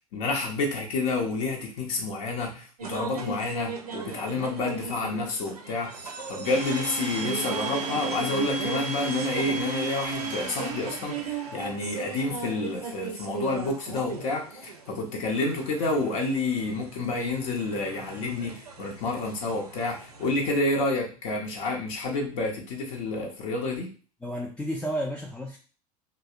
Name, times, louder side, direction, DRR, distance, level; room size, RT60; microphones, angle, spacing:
voice 1, 0.1-23.9, left 2 dB, 55° left, 1 dB, 0.6 m, -29 dB
sound 1, 2.8-20.6, right 4 dB, 85° right, 0.4 m, -38 dB
Domestic sounds home sounds, 6.4-12.0, right 4 dB, 35° right, 0.6 m, -33 dB
voice 2, 24.2-25.6, equal, 5° left, -2 dB, 0.3 m, -31 dB
2.7 x 2.0 x 2.4 m, 0.38 s
figure-of-eight pair, 75°, 19 cm